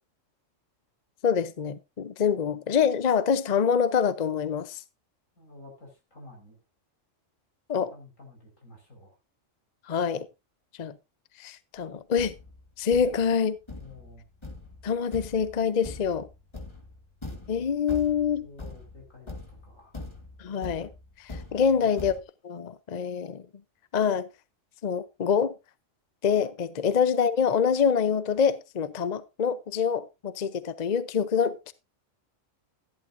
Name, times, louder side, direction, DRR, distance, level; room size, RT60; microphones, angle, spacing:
voice 1, 1.2-4.8 7.7-7.9 9.9-10.3 10.8-10.9 11.4-12.3 12.8-13.6 14.8-16.3 17.5-18.5 20.4-20.9 21.2-23.4 23.9-24.3 24.8-25.5 26.2-31.7, left 6 dB, 40° left, 0.7 m, -26 dB
voice 2, 5.4-6.6 7.9-9.2 13.8-14.2 18.2-19.9 21.7-21.9, left 2 dB, 90° left, 5.3 m, -50 dB
Thump thud, 11.8-11.9 12.2-22.2, left 2 dB, 20° left, 1.7 m, -43 dB
14.0 x 11.0 x 2.6 m
omnidirectional pair, 1.3 m